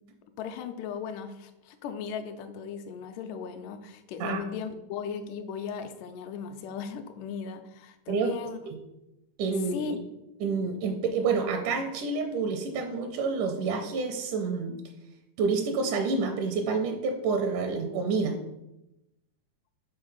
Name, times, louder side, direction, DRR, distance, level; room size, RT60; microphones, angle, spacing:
voice 1, 0.4-8.6 9.7-10.0, left 6 dB, 85° left, 6 dB, 2.1 m, -37 dB
voice 2, 9.4-9.8 10.4-14.7 15.4-18.4, right 4 dB, 80° right, 5 dB, 2.1 m, -28 dB
5.5 x 3.9 x 5.3 m, 0.90 s
omnidirectional pair, 3.6 m